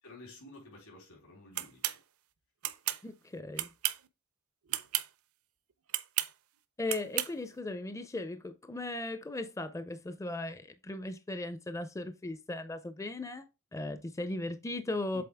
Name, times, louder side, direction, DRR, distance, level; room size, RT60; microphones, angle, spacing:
voice 1, 0.0-2.0 15.1-15.2, left 2 dB, 80° left, 3.9 m, -52 dB
sound 1, 1.6-2.0 2.6-3.0 3.6-4.1 4.7-5.1 5.9-6.3 6.9-7.3, right 14 dB, 70° right, 0.6 m, -32 dB
voice 2, 3.0-3.7 6.8-13.5 13.7-15.2, left 2 dB, 15° left, 0.4 m, -37 dB
7.6 x 4.0 x 3.4 m
head